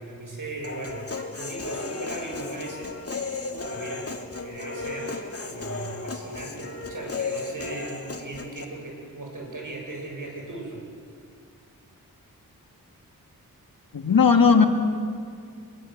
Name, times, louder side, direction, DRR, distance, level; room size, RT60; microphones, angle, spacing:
voice 1, 0.0-2.9 3.2-4.1 4.4-10.8, right 2 dB, 55° right, 1 dB, 7.8 m, -38 dB
Human voice, 0.6-8.6, left 3 dB, 40° left, 2.5 m, -34 dB
voice 2, 13.9-14.7, left 5 dB, 65° left, 5 dB, 1.9 m, -17 dB
24.0 x 21.5 x 8.0 m, 2.2 s
cardioid pair, 45°, 37 cm